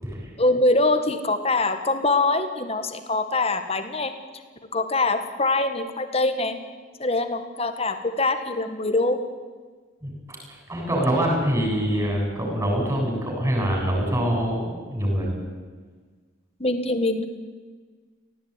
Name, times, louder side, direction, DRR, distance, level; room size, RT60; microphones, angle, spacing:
voice 1, 0.4-4.1 4.7-6.6 7.0-9.2 16.6-17.2, left 2 dB, 30° left, 8 dB, 1.7 m, -23 dB
voice 2, 10.0-10.4 10.7-14.6 14.9-15.3, equal, 15° right, -1 dB, 7.6 m, -24 dB
19.0 x 16.0 x 9.9 m, 1.5 s
head